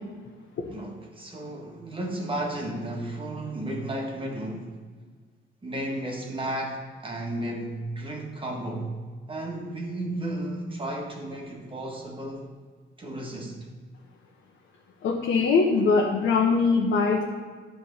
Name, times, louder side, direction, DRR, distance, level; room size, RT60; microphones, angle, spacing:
voice 1, 0.7-4.7 5.6-8.9 9.3-12.5 13.0-13.7, right 1 dB, 25° right, 0 dB, 1.6 m, -33 dB
voice 2, 15.0-17.2, left 4 dB, 75° left, -2 dB, 1.1 m, -22 dB
10.0 x 3.5 x 6.7 m, 1.5 s
cardioid pair, 90°, 20 cm